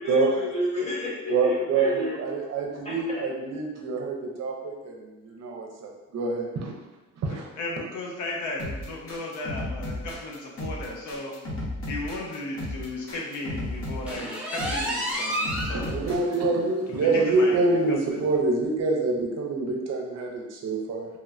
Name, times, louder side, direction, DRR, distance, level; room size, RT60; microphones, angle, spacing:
voice 1, 0.0-2.2 2.8-2.9, left 1 dB, 20° left, -6 dB, 1.1 m, -30 dB
voice 2, 1.3-6.7 7.2-7.4 15.9-21.1, right 3 dB, 60° right, 0 dB, 0.6 m, -26 dB
voice 3, 7.3-11.3 11.9-16.2 16.9-18.2, left 2 dB, 75° left, -2 dB, 0.7 m, -35 dB
sound 1, 8.6-16.4, left 1 dB, 45° left, 0.9 m, -34 dB
sound 2, 14.1-15.8 16.2-16.3 16.7-16.8 17.2-17.3 18.3-18.4, equal, 5° right, 0.5 m, -30 dB
3.0 x 2.0 x 2.4 m, 1.1 s
cardioid pair, 90°, 30 cm